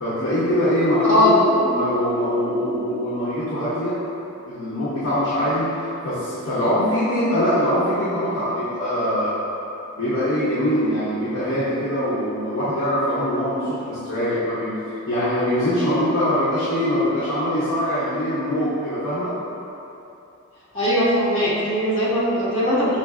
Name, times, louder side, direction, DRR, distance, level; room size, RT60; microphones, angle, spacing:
voice 1, 0.0-4.0 4.4-9.3 10.0-14.7 15.1-19.3, equal, 85° left, -12 dB, 0.8 m, -23 dB
voice 2, 1.1-1.4 20.7-23.0, equal, 70° left, -10 dB, 1.3 m, -19 dB
5.1 x 2.6 x 2.4 m, 2.8 s
head